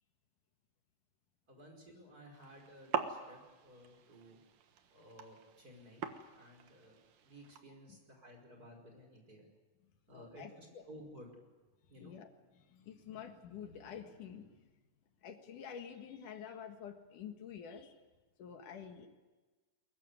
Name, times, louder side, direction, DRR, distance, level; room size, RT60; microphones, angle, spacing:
voice 1, 1.5-4.4 4.9-6.1 6.3-9.4 10.1-11.4 11.9-12.2 13.1-13.3, equal, 25° right, 1 dB, 5.4 m, -56 dB
sound 1, 2.3-7.6, right 7 dB, 80° right, 3.0 m, -44 dB
voice 2, 10.1-10.8 12.0-14.6 15.2-18.0 18.4-19.1, left 8 dB, 75° left, 6 dB, 3.2 m, -49 dB
22.0 x 22.0 x 9.5 m, 1.3 s
omnidirectional pair, 3.7 m